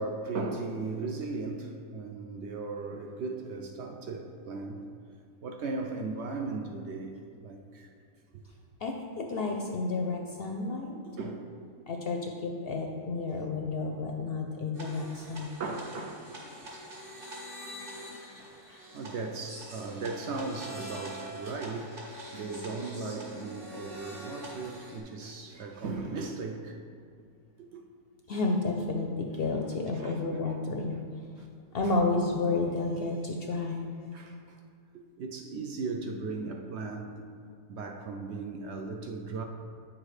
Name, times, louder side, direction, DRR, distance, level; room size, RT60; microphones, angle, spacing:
voice 1, 0.0-4.8 5.4-7.9 8.3-8.4 11.2-11.5 15.6-16.3 18.9-26.8 27.7-27.8 29.9-30.5 31.4-31.5 31.8-31.9 33.5-33.6 34.1-34.6 35.2-37.2 37.7-39.4, right 3 dB, 65° right, 3 dB, 0.7 m, -37 dB
voice 2, 8.8-11.0 11.9-15.5 18.7-18.8 28.3-31.0 31.7-33.9, left 3 dB, 60° left, 2 dB, 0.6 m, -31 dB
sound 1, 14.7-25.0, right 1 dB, 40° right, 1.7 m, -44 dB
8.6 x 6.2 x 3.2 m, 2.2 s
omnidirectional pair, 1.4 m